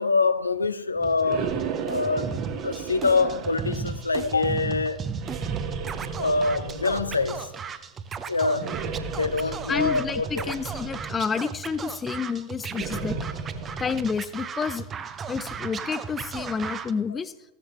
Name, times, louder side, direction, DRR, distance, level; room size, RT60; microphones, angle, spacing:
voice 1, 0.0-1.6 1.9-2.3 2.6-5.0 6.2-7.5 8.3-8.7 9.2-10.6, left 3 dB, 80° left, 0.7 m, -25 dB
Scratching (performance technique), 1.0-16.9, right 6 dB, 25° right, 0.8 m, -36 dB
sound 1, 1.2-4.8 5.2-7.6 8.5-11.3 12.7-14.1, right 6 dB, 40° right, 1.6 m, -35 dB
voice 2, 9.4-13.2 13.8-14.8 15.3-17.3, left 6 dB, 20° left, 0.7 m, -29 dB
15.5 x 13.5 x 3.2 m
figure-of-eight pair, 90°, 0 cm